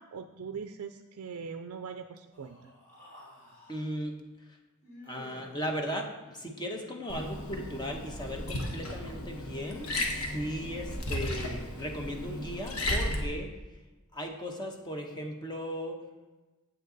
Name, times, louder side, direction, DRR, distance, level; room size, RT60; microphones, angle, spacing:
voice 1, 0.0-2.7, right 6 dB, 75° right, 7 dB, 0.4 m, -41 dB
Human voice, 2.3-3.8 4.8-5.7 6.6-7.7, left 1 dB, 40° left, 2.8 m, -52 dB
voice 2, 3.7-4.6 5.0-13.5 14.1-16.0, equal, 20° left, 2 dB, 1.0 m, -37 dB
Liquid, 7.1-13.2, left 1 dB, 75° left, 1.2 m, -35 dB
7.9 x 7.6 x 3.9 m, 1.1 s
head